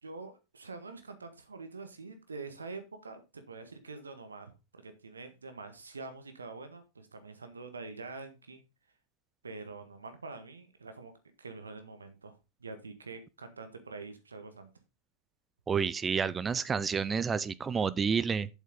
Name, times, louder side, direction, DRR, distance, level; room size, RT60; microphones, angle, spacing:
voice 1, 0.0-8.6 9.4-11.1 11.4-14.7, right 3 dB, 75° right, 1.5 m, -45 dB
voice 2, 15.7-18.5, right 6 dB, 20° right, 0.5 m, -29 dB
8.1 x 7.7 x 3.7 m
figure-of-eight pair, 90°, 0 cm